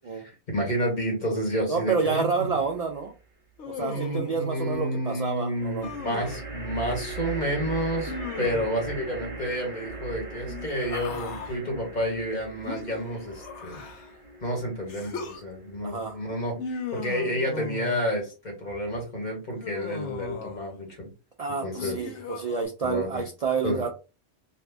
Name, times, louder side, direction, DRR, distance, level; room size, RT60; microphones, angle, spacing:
voice 1, 0.1-2.5 3.8-13.8 14.4-16.6 16.9-21.1 21.6-22.0 22.8-23.2 23.6-23.8, equal, 40° left, 0 dB, 1.3 m, -30 dB
voice 2, 1.7-3.1 3.7-5.9 15.8-16.2 21.4-23.9, right 5 dB, 55° right, 3 dB, 0.4 m, -29 dB
sound 1, 2.4-3.1 5.5-16.9, right 3 dB, 30° right, 0.9 m, -40 dB
Human voice, 3.6-4.4 5.8-6.5 8.1-8.8 10.4-11.6 12.7-14.2 14.9-15.4 16.6-18.1 19.6-20.8 21.8-22.6, left 4 dB, 80° left, 1.0 m, -37 dB
2.7 x 2.5 x 3.4 m, 0.31 s
omnidirectional pair, 1.2 m